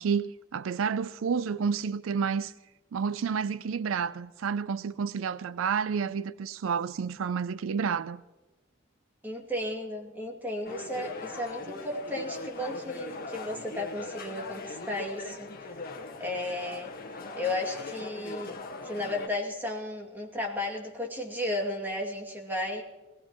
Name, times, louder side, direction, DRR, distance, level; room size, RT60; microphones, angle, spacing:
voice 1, 0.0-2.5 2.9-8.2, right 6 dB, 75° right, 0.4 m, -30 dB
voice 2, 9.2-16.9 17.4-18.6 18.8-22.8, left 1 dB, 10° right, 2.4 m, -34 dB
sound 1, 10.6-19.3, left 3 dB, 45° left, 1.5 m, -40 dB
21.5 x 18.0 x 3.0 m
head